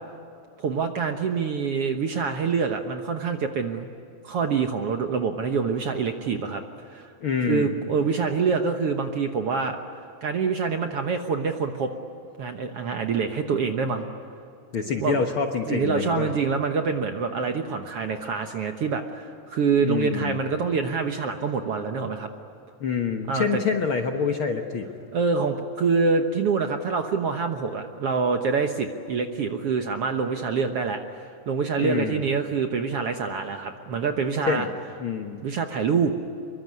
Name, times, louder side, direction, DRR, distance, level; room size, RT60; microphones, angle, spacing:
voice 1, 0.6-3.9 4.2-7.1 7.5-9.8 10.2-11.9 12.4-14.1 15.0-15.2 15.7-22.3 23.3-23.6 25.1-34.7 35.4-36.1, right 5 dB, 60° right, 5 dB, 1.7 m, -26 dB
voice 2, 7.2-7.7 14.7-16.3 19.8-20.5 22.8-24.9 31.8-32.2 34.5-34.7 35.0-35.4, left 6 dB, 55° left, 4 dB, 1.6 m, -26 dB
25.5 x 23.0 x 9.6 m, 2.7 s
omnidirectional pair, 3.8 m